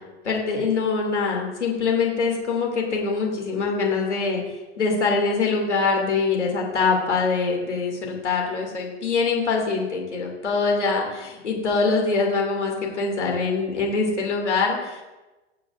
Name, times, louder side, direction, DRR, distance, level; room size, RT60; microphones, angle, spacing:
voice 1, 0.2-4.4 4.8-15.0, left 4 dB, 85° left, -1 dB, 2.4 m, -24 dB
19.5 x 7.6 x 2.5 m, 1.1 s
hypercardioid pair, 95°, 34 cm